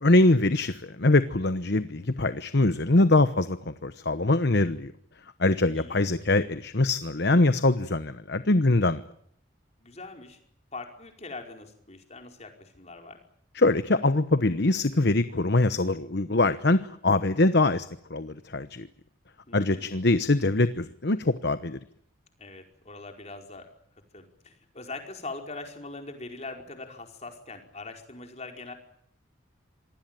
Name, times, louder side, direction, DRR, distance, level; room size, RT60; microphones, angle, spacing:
voice 1, 0.0-4.9 5.4-9.0 13.5-18.9 19.5-21.8, left 2 dB, 55° left, 12 dB, 1.0 m, -23 dB
voice 2, 5.7-6.1 9.8-10.4 10.7-13.2 19.5-20.0 22.4-23.7 24.1-28.7, left 3 dB, 35° left, 3 dB, 4.8 m, -42 dB
26.5 x 19.5 x 9.1 m, 0.68 s
head